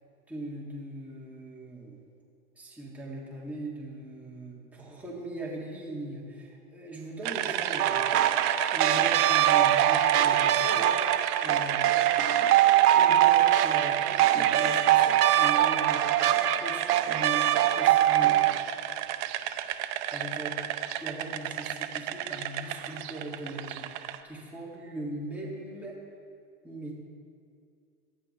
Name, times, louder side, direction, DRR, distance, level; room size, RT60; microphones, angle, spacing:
voice 1, 0.3-2.0 2.6-8.0 8.5-12.1 12.9-16.0 16.6-18.3 20.1-20.6 20.9-26.0 26.6-27.0, right 1 dB, 5° right, -5 dB, 2.8 m, -40 dB
sound 1, 7.2-24.2, right 12 dB, 30° right, 0.6 m, -33 dB
sound 2, 7.8-18.6, right 12 dB, 90° right, 1.1 m, -23 dB
28.0 x 12.0 x 3.4 m, 2.3 s
supercardioid pair, 155°, 45 cm